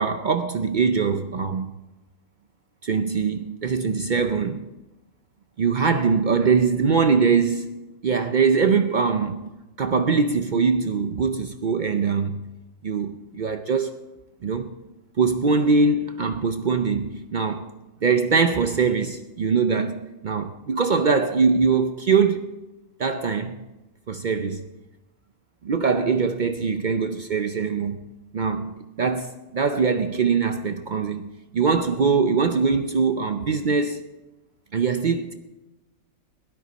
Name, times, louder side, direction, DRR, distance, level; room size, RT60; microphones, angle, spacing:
voice 1, 0.0-1.7 2.8-4.7 5.6-7.7 8.0-9.5 9.8-12.4 12.8-14.0 14.4-14.8 15.2-17.7 18.0-22.5 23.0-23.6 24.1-24.6 25.6-28.0 28.3-31.2 31.5-34.0 34.7-35.3, right 5 dB, 55° right, 0.5 m, -22 dB
17.0 x 12.5 x 4.1 m
omnidirectional pair, 1.4 m